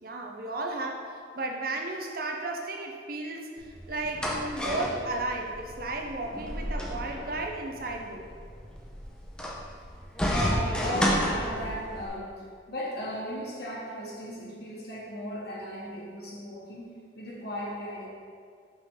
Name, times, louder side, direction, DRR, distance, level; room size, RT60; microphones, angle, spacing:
voice 1, 0.0-8.3, right 2 dB, 50° right, 2 dB, 0.7 m, -34 dB
sound 1, 3.6-12.1, equal, 5° left, 0.6 m, -32 dB
voice 2, 10.2-18.1, equal, 55° left, -5 dB, 1.5 m, -36 dB
5.9 x 5.8 x 3.9 m, 2.1 s
head